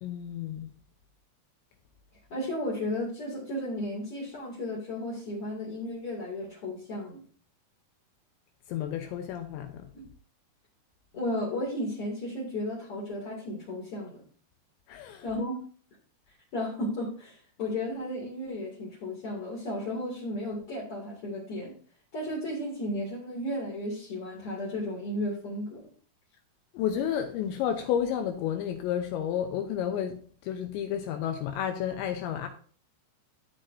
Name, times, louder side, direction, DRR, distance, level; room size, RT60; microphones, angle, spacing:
voice 1, 0.0-0.7 8.7-9.9 14.9-15.3 26.7-32.5, left 9 dB, 80° left, 2.8 m, -31 dB
voice 2, 2.3-7.2 9.9-10.0 11.1-14.2 15.2-15.6 16.5-21.8 22.1-25.8, left 1 dB, 40° left, 2.6 m, -34 dB
12.5 x 7.8 x 2.7 m
omnidirectional pair, 5.7 m